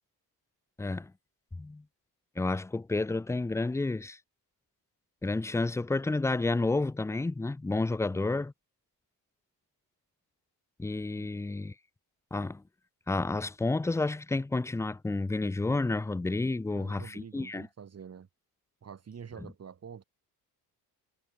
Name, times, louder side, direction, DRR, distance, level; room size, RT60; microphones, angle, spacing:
voice 1, 0.8-1.1 1.6-1.8 2.4-4.2 5.2-8.5 10.8-11.7 12.3-12.6 13.1-17.7, left 2 dB, 5° left, 0.4 m, -30 dB
voice 2, 16.7-18.3 18.8-20.0, right 7 dB, 40° right, 4.5 m, -47 dB
cardioid pair, 135°, 39 cm